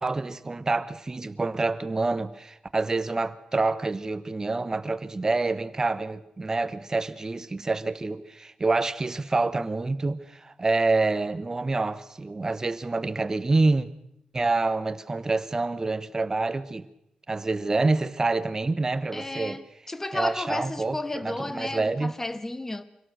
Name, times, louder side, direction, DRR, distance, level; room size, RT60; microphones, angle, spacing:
voice 1, 0.0-13.9 14.3-16.9 17.3-19.6 20.1-22.1, right 3 dB, 25° right, 1.0 m, -27 dB
voice 2, 19.1-22.8, left 2 dB, 15° left, 1.2 m, -33 dB
25.0 x 17.5 x 6.4 m
wide cardioid pair, 130°, 2 cm